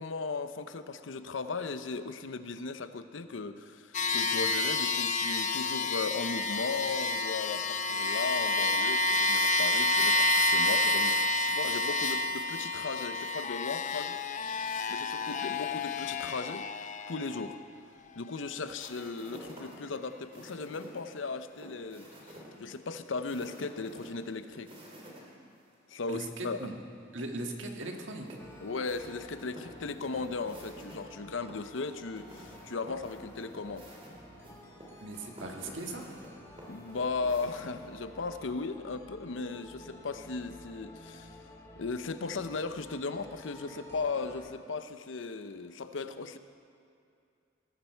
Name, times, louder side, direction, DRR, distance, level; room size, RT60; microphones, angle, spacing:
voice 1, 0.0-14.2 14.9-16.7 17.1-17.6 18.2-24.7 25.9-26.7 28.6-33.9 36.7-41.4 41.8-46.4, left 4 dB, 75° left, 10 dB, 0.7 m, -37 dB
sound 1, 3.9-17.6, left 2 dB, 40° left, 0.6 m, -29 dB
sound 2, 18.8-25.2 25.5-25.6 27.8-31.0 31.5-37.9, right 1 dB, 30° right, 2.9 m, -51 dB
voice 2, 26.1-26.7 27.1-28.3 35.0-36.1, right 2 dB, 75° right, 2 dB, 1.7 m, -39 dB
sound 3, 28.4-44.4, equal, 15° left, 2.3 m, -52 dB
19.5 x 14.0 x 4.6 m, 2.4 s
head